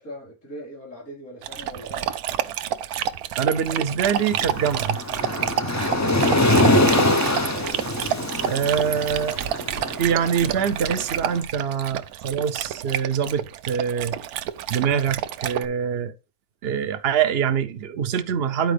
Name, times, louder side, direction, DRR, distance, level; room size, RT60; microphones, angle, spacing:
voice 1, 0.0-2.2 11.8-11.9, equal, 65° left, 4.6 m, -39 dB
Dog, 1.4-15.7, right 10 dB, 80° right, 1.1 m, -29 dB
voice 2, 3.4-5.0 8.5-9.4 10.0-14.2 14.7-16.1 16.6-18.7, right 7 dB, 55° right, 0.7 m, -24 dB
Waves surf, 4.2-11.3, left 1 dB, 25° left, 0.4 m, -23 dB
10.5 x 4.5 x 3.3 m
omnidirectional pair, 1.6 m